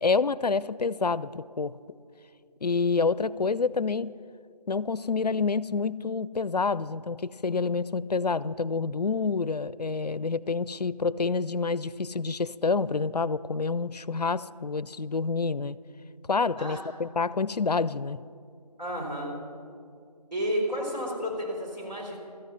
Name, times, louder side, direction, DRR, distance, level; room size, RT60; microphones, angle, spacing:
voice 1, 0.0-1.8 2.6-4.1 4.7-15.8 16.3-18.2, left 4 dB, 70° left, 20 dB, 0.4 m, -28 dB
voice 2, 18.8-19.3 20.3-22.2, equal, 85° right, -2 dB, 4.1 m, -31 dB
13.5 x 11.0 x 5.5 m, 2.4 s
figure-of-eight pair, 170°, 21 cm